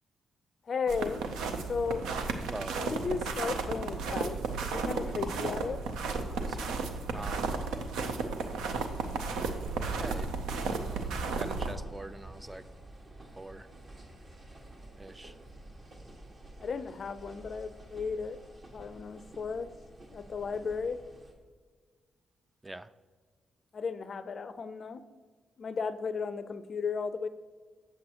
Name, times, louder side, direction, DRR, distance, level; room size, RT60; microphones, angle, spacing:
voice 1, 0.7-1.2 1.7-2.1 2.7-4.4 4.6-5.8 16.6-18.4 18.7-19.7 20.1-21.0 23.7-25.0 25.6-27.3, left 5 dB, 55° left, 13 dB, 0.4 m, -35 dB
sound 1, 0.9-11.7, right 4 dB, 85° right, 0.6 m, -34 dB
voice 2, 2.4-3.0 6.2-6.8 7.1-7.6 9.9-10.4 10.8-12.7 13.4-13.7 15.0-15.3 22.6-22.9, right 2 dB, 20° right, 14 dB, 0.4 m, -44 dB
sound 2, 4.8-21.3, right 1 dB, 45° right, 1.7 m, -51 dB
7.8 x 7.6 x 2.9 m, 1.5 s
supercardioid pair, 50°, 0 cm